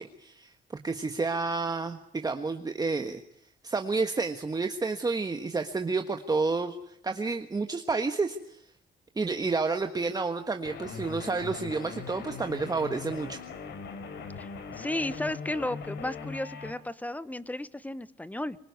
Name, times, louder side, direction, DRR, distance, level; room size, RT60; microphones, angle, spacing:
voice 1, 0.0-3.2 3.6-8.6 9.2-13.4, right 4 dB, 20° right, 6 dB, 1.5 m, -30 dB
sound 1, 10.6-16.7, left 5 dB, 80° left, 3.8 m, -40 dB
voice 2, 14.8-18.6, left 1 dB, 10° left, 15 dB, 1.1 m, -34 dB
24.5 x 22.5 x 9.6 m, 0.70 s
cardioid pair, 115°, 18 cm